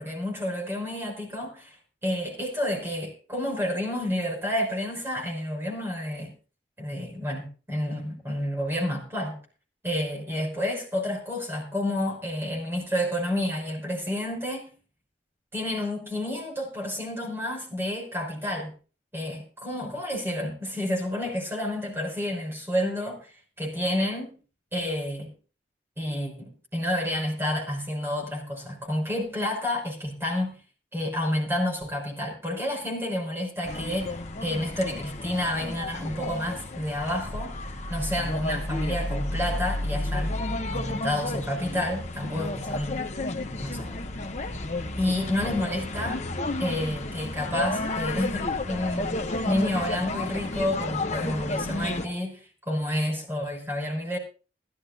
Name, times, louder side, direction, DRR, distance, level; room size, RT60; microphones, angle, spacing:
voice 1, 0.0-1.8 2.0-6.3 6.8-9.4 9.8-14.7 15.5-18.7 19.1-24.4 24.7-25.3 26.0-30.6 30.9-37.6 37.9-40.4 40.7-43.0 43.6-43.9 45.0-46.2 46.6-54.2, left 1 dB, 15° right, 5.6 m, -30 dB
sound 1, 33.6-52.1, left 2 dB, 40° left, 1.2 m, -32 dB
22.0 x 13.0 x 2.6 m
head